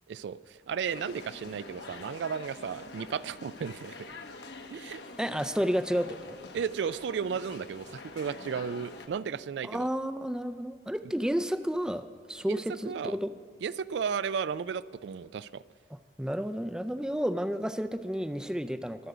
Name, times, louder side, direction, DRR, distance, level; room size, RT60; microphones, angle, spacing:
voice 1, 0.1-4.1 4.7-5.0 6.5-9.9 12.5-13.2 13.6-15.6, right 6 dB, 70° right, 16 dB, 0.3 m, -34 dB
sound 1, 0.9-9.1, left 3 dB, 70° left, 1.1 m, -46 dB
voice 2, 5.2-6.4 9.6-13.3 15.9-19.1, equal, 5° right, 10 dB, 0.4 m, -31 dB
23.0 x 7.9 x 4.9 m, 2.1 s
head